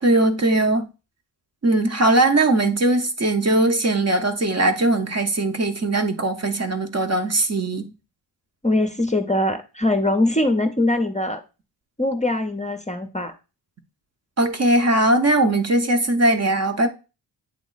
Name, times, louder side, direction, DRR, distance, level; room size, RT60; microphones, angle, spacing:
voice 1, 0.0-0.9 1.6-7.9 14.4-16.9, right 2 dB, 35° right, 0.9 m, -20 dB
voice 2, 8.6-11.4 12.0-13.3, left 1 dB, 15° left, 0.7 m, -22 dB
8.2 x 3.0 x 4.0 m
cardioid pair, 70°, 45 cm